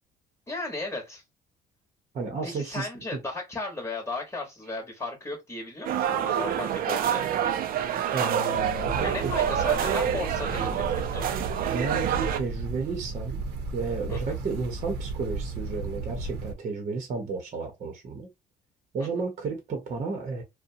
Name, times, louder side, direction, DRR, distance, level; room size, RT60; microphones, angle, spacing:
voice 1, 0.5-1.2 2.4-7.5 9.0-11.3 14.1-14.4 19.0-19.1, left 2 dB, 15° left, 1.0 m, -35 dB
voice 2, 2.1-3.2 8.1-9.3 11.7-13.4 13.7-18.3 18.9-20.4, right 4 dB, 40° right, 0.9 m, -32 dB
sound 1, 5.8-12.4, right 9 dB, 60° right, 0.4 m, -27 dB
sound 2, 8.5-16.5, right 3 dB, 85° right, 0.8 m, -34 dB
2.7 x 2.2 x 2.5 m
cardioid pair, 110°, 17 cm